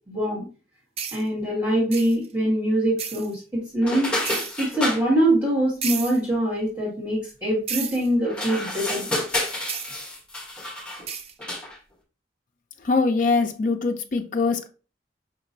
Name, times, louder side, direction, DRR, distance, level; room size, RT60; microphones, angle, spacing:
voice 1, 0.1-0.5 1.1-4.1 4.6-9.1, right 1 dB, 15° right, 1.5 m, -23 dB
sound 1, 1.0-1.2 1.9-2.3 3.0-3.3 4.2-4.5 5.8-6.2 7.7-8.1 9.7-9.9 11.1-11.3, right 7 dB, 35° right, 0.3 m, -32 dB
sound 2, 3.8-5.0 8.2-11.1 11.4-11.8, left 1 dB, 5° left, 1.0 m, -29 dB
voice 2, 12.8-14.7, left 4 dB, 45° left, 0.4 m, -22 dB
5.1 x 2.9 x 2.6 m
head